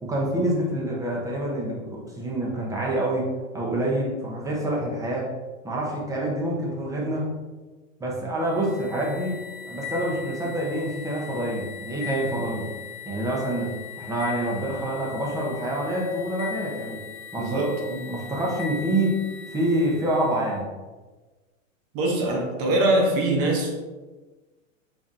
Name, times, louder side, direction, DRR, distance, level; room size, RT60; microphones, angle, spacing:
voice 1, 0.0-5.3 5.6-7.3 8.0-9.4 9.7-12.7 13.1-17.0 17.3-17.7 18.1-19.2 19.5-20.7, right 1 dB, 10° right, -3 dB, 0.6 m, -27 dB
sound 1, 8.4-20.5, left 8 dB, 70° left, 1.0 m, -39 dB
voice 2, 17.4-18.0 21.9-23.7, right 1 dB, 35° right, 1 dB, 0.8 m, -23 dB
4.0 x 3.4 x 2.5 m, 1.3 s
hypercardioid pair, 130°, 39 cm